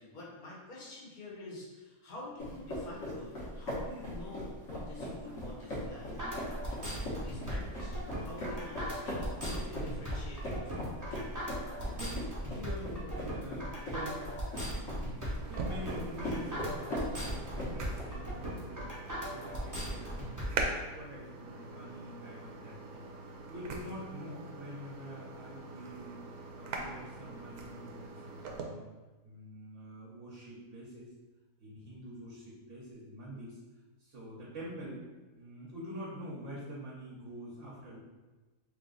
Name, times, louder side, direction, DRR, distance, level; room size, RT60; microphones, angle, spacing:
voice 1, 0.0-6.1 7.2-11.2, left 2 dB, 85° left, -5 dB, 1.5 m, -48 dB
sound 1, 2.4-18.1, left 1 dB, 60° left, 1.4 m, -40 dB
voice 2, 5.0-5.7 6.1-6.8 7.5-7.7 12.0-18.8 19.2-20.3 20.9-23.1 23.5-26.2 26.5-28.8 29.2-31.1 31.6-33.6 34.0-35.0 35.3-38.0, equal, 60° right, -6 dB, 1.2 m, -46 dB
sound 2, 6.2-20.5, equal, 15° right, 0.8 m, -38 dB
sound 3, 15.4-28.6, right 3 dB, 85° right, 1.1 m, -42 dB
3.3 x 3.0 x 3.8 m, 1.2 s
omnidirectional pair, 1.5 m